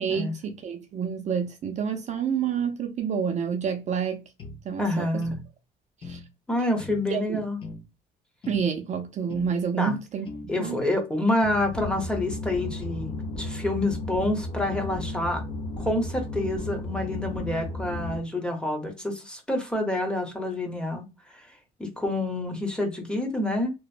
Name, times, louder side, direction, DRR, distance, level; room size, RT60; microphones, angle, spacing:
voice 1, 0.0-4.2 4.6-5.2 6.0-6.2 7.1-7.4 8.5-10.3 10.6-10.8, right 7 dB, 45° right, 0.5 m, -28 dB
sound 1, 4.4-4.6 5.2-5.5 6.0-6.3 6.8-7.1 7.6-7.9 8.4-8.7 9.3-9.6 10.3-10.5 11.4-12.1 12.8-13.5, left 3 dB, 30° left, 0.6 m, -40 dB
voice 2, 4.8-5.3 6.5-7.6 9.8-9.9 10.5-15.4 15.8-21.5 21.8-23.7, left 1 dB, 5° left, 0.9 m, -28 dB
sound 2, 11.7-18.2, left 2 dB, 50° left, 1.6 m, -34 dB
2.9 x 2.0 x 2.5 m
cardioid pair, 110°, 17 cm